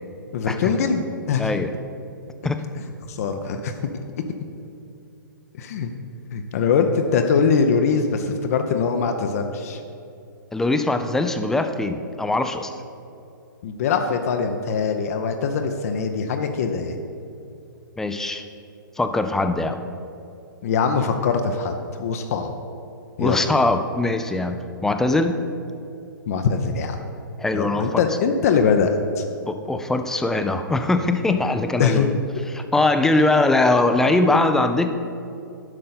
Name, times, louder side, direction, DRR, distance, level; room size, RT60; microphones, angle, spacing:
voice 1, 0.3-1.5 3.1-3.7 5.6-5.9 6.3-9.8 13.6-17.0 20.6-21.7 22.0-22.5 23.2-23.5 26.3-27.0 27.5-29.2 31.8-32.1, left 5 dB, 45° left, 5 dB, 0.6 m, -22 dB
voice 2, 1.4-1.7 2.4-2.6 10.5-12.8 18.0-18.4 19.0-19.8 23.2-25.3 27.4-28.0 29.5-32.2 32.5-35.0, left 2 dB, 5° left, 8 dB, 0.4 m, -21 dB
10.5 x 6.4 x 4.1 m, 2.6 s
figure-of-eight pair, 120°, 11 cm